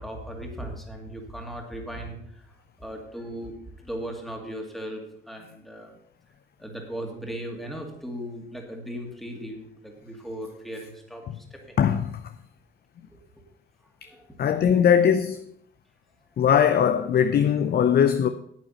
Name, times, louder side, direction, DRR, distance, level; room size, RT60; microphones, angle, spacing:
voice 1, 0.0-2.5 2.8-5.9 6.6-11.8 14.1-14.3, equal, ahead, 2.3 m, -37 dB
voice 2, 11.8-12.2 14.4-15.4 16.4-18.3, left 8 dB, 55° left, 0.6 m, -20 dB
9.1 x 8.2 x 5.7 m
cardioid pair, 90°, 20 cm